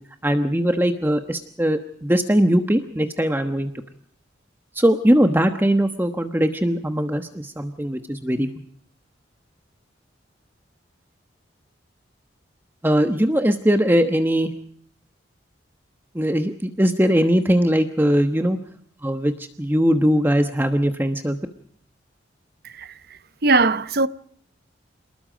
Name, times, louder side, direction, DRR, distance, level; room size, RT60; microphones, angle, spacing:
voice 1, 0.2-3.7 4.7-8.5 12.8-14.5 16.1-18.6 19.0-21.4, equal, 10° right, 1.1 m, -20 dB
voice 2, 22.6-24.1, right 3 dB, 55° right, 0.9 m, -21 dB
28.0 x 20.0 x 5.1 m
head